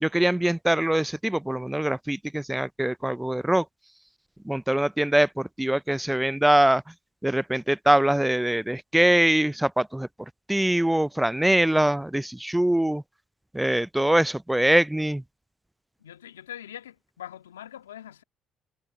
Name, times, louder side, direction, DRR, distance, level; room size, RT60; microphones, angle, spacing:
voice 1, 0.0-3.7 4.4-6.8 7.2-10.1 10.5-13.0 13.5-15.2, right 1 dB, 5° right, 0.3 m, -23 dB
voice 2, 16.0-18.2, left 11 dB, 85° left, 1.7 m, -42 dB
hypercardioid pair, 50°, 0 cm